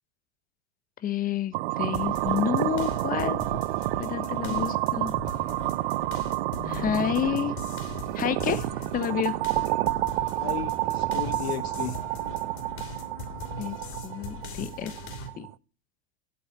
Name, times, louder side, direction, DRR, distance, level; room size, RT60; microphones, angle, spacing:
voice 1, 1.0-3.4 4.0-5.1 6.6-7.5 8.1-8.7 8.9-9.3 13.6-13.8 14.0-14.9 15.4-15.5, left 9 dB, 25° left, 1.0 m, -29 dB
sound 1, 1.5-15.5, right 19 dB, 60° right, 0.4 m, -29 dB
sound 2, 1.9-15.3, left 2 dB, 40° left, 3.2 m, -40 dB
voice 2, 4.2-4.8 6.5-7.1 10.4-11.9, left 11 dB, 75° left, 1.1 m, -36 dB
8.3 x 7.7 x 7.5 m
hypercardioid pair, 95°, 32 cm